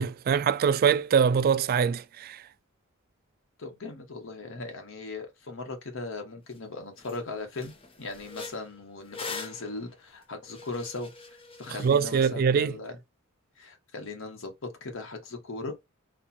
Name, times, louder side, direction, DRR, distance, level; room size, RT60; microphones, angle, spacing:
voice 1, 0.0-2.4 11.8-12.7, right 6 dB, 45° right, 0.3 m, -23 dB
voice 2, 3.6-7.7 8.0-13.0 13.6-15.9, left 3 dB, 65° left, 1.2 m, -38 dB
sound 1, 6.5-6.6 7.0-7.2 7.5-12.3, left 4 dB, 25° left, 0.8 m, -43 dB
4.4 x 2.4 x 4.2 m
head